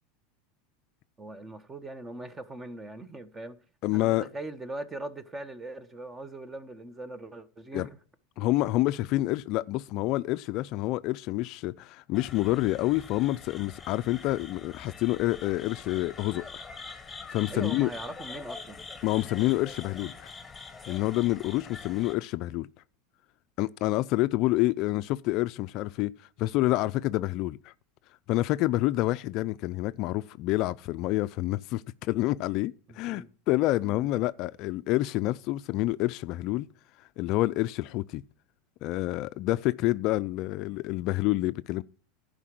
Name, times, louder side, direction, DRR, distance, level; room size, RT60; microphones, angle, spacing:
voice 1, 1.2-3.6 3.9-7.9 17.5-18.8 32.9-33.3 33.8-34.1, right 2 dB, 15° right, 1.1 m, -40 dB
voice 2, 3.8-4.3 7.7-7.9 8.4-16.6 17.3-17.9 19.0-20.3 20.9-22.7 23.6-26.1 26.4-27.7 28.3-36.7 37.2-38.2 38.8-41.8, left 17 dB, 55° left, 0.4 m, -28 dB
sound 1, 12.1-22.1, left 4 dB, 15° left, 1.3 m, -44 dB
11.0 x 5.1 x 7.6 m
supercardioid pair, 110°, 0 cm